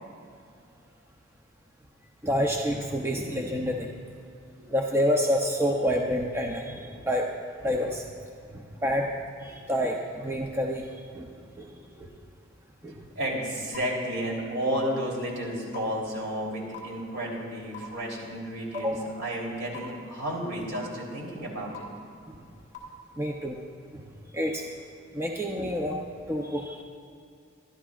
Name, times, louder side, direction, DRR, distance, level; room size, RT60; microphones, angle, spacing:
voice 1, 2.2-3.9 4.7-7.3 7.6-8.0 8.5-9.1 9.4-10.8 11.1-11.3 11.6-11.7 12.0-12.1 12.8-13.0 18.7-19.0 23.2-23.6 23.9-24.0 24.3-24.7 25.1-26.0 26.3-26.8, equal, 15° right, 0 dB, 0.7 m, -28 dB
voice 2, 13.1-21.8, equal, 60° right, -3 dB, 3.4 m, -32 dB
sound 1, 13.7-13.8 14.7-14.8 15.7-15.8 16.7-16.8 17.7-17.8 18.7-18.8 19.7-19.8 20.7-20.8 21.7-21.8 22.7-22.8, left 14 dB, 40° left, 2.8 m, -39 dB
24.0 x 12.0 x 2.5 m, 2.5 s
head